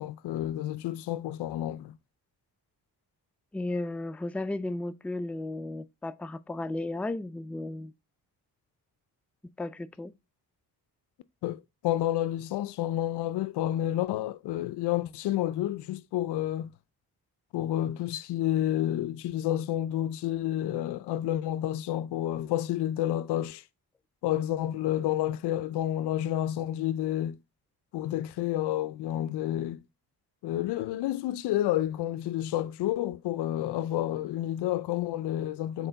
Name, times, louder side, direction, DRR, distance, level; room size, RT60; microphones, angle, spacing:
voice 1, 0.0-2.0 11.4-16.7 17.5-23.6 24.2-27.4 27.9-29.8 30.4-35.9, left 12 dB, 90° left, 0.5 m, -30 dB
voice 2, 3.5-7.9 9.6-10.1, left 2 dB, 5° left, 0.3 m, -34 dB
6.7 x 4.3 x 3.8 m
cardioid pair, 85°, 39 cm